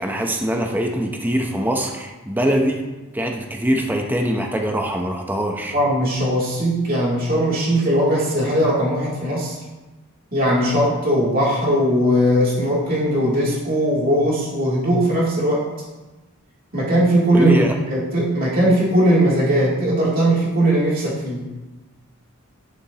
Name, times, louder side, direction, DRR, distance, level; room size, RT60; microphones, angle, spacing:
voice 1, 0.0-2.8 3.1-5.7 17.3-17.8, equal, 10° right, 2 dB, 0.7 m, -23 dB
voice 2, 5.7-9.6 10.3-15.7 16.7-21.4, equal, 40° right, -6 dB, 2.8 m, -19 dB
11.0 x 7.0 x 2.9 m, 1.1 s
head